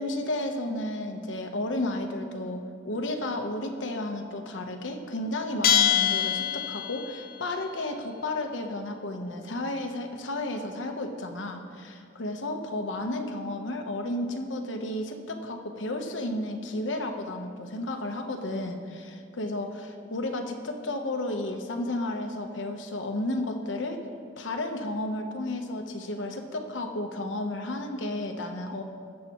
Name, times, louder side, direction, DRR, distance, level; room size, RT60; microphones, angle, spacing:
voice 1, 0.0-24.0 24.4-28.8, left 1 dB, 85° left, 5 dB, 1.0 m, -32 dB
Bell, 5.6-7.2, left 10 dB, 55° left, 0.7 m, -24 dB
19.5 x 7.6 x 3.0 m, 2.3 s
head